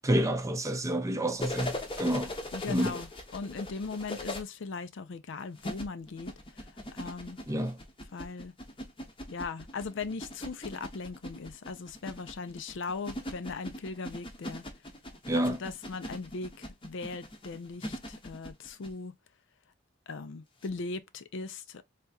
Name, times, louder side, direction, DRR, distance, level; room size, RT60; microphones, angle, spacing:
voice 1, 0.0-2.3 2.7-3.0 7.5-7.8 15.3-15.6, right 1 dB, 15° right, 0.5 m, -29 dB
sound 1, 1.4-4.4 5.6-18.9 20.6-20.7, left 1 dB, 25° left, 0.8 m, -40 dB
voice 2, 2.5-6.3 6.9-7.4 8.1-8.5 9.3-14.6 15.3-19.1 20.1-21.8, left 4 dB, 65° left, 0.5 m, -39 dB
3.5 x 2.9 x 2.7 m
head